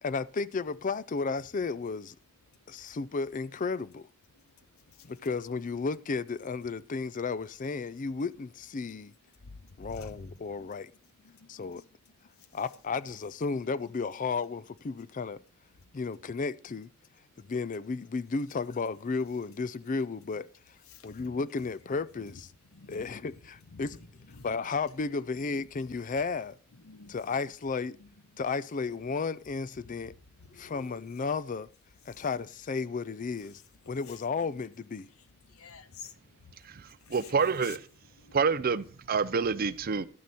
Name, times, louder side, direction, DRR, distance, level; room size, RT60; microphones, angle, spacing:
voice 1, 0.0-2.2 2.7-4.1 5.0-9.1 9.8-10.9 11.5-11.8 12.5-15.4 15.9-16.9 17.4-20.5 21.0-22.5 22.9-24.0 24.4-26.6 27.1-28.0 28.4-30.1 30.5-31.7 32.1-33.6 33.9-35.1, left 4 dB, 35° left, 0.4 m, -33 dB
voice 2, 9.4-10.3 10.6-10.7 11.2-11.7 20.9-21.3 22.7-23.1 23.7-23.8 24.3-24.5 26.8-27.2 28.0-28.1 30.5-30.7 35.5-36.1 37.0-37.3 37.6-37.8 38.2-38.4, left 4 dB, 70° left, 1.0 m, -48 dB
voice 3, 37.1-37.8 38.3-40.1, right 5 dB, 40° right, 0.5 m, -27 dB
12.0 x 9.5 x 4.2 m
head